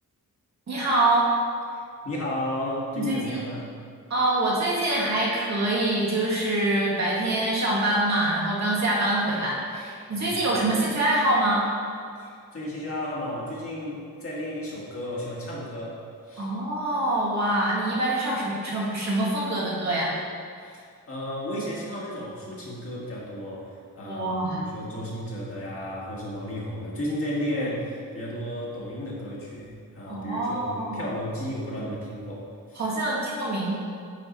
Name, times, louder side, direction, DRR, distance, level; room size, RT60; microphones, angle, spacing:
voice 1, 0.7-1.3 3.0-3.4 4.1-11.6 16.4-20.1 24.1-24.6 30.1-31.1 32.7-33.8, right 1 dB, 55° right, -6 dB, 1.9 m, -25 dB
voice 2, 1.7-3.7 10.1-10.4 12.2-16.0 16.3-16.5 20.6-33.0, left 1 dB, 40° left, -6 dB, 1.9 m, -33 dB
9.2 x 4.6 x 4.3 m, 2.2 s
wide cardioid pair, 150°, 34 cm